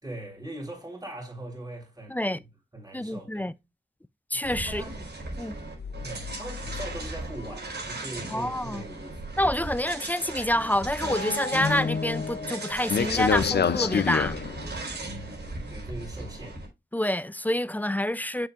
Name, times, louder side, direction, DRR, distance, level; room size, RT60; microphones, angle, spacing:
voice 1, 0.0-2.5 2.7-3.5 4.3-5.1 6.0-9.5 15.0-16.6, right 1 dB, 20° right, 4.2 m, -41 dB
voice 2, 2.1-2.4 2.9-3.5 4.3-4.8 5.4-5.6 8.3-8.8 9.4-14.4 16.9-18.5, left 1 dB, 10° left, 0.4 m, -27 dB
sound 1, 4.4-16.7, right 2 dB, 70° right, 4.6 m, -37 dB
sound 2, 5.8-7.6 7.9-8.0 8.5-8.6 8.9-9.0 11.0-14.9, left 6 dB, 70° left, 0.6 m, -29 dB
7.6 x 7.3 x 2.5 m
wide cardioid pair, 85°, 18 cm